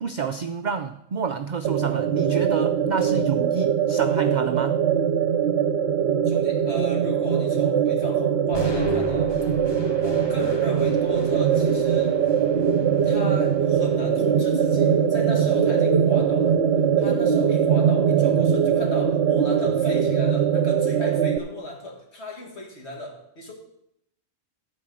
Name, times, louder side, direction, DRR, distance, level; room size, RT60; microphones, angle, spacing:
voice 1, 0.0-4.8, right 6 dB, 75° right, 9 dB, 0.4 m, -28 dB
sound 1, 1.6-21.4, right 8 dB, 60° right, 1.0 m, -21 dB
voice 2, 6.2-9.4 10.0-12.1 13.0-16.6 17.0-23.5, left 1 dB, 55° left, 0 dB, 2.4 m, -36 dB
sound 2, 8.5-16.6, left 3 dB, 20° left, 1.0 m, -39 dB
13.5 x 4.7 x 7.6 m, 0.78 s
omnidirectional pair, 1.4 m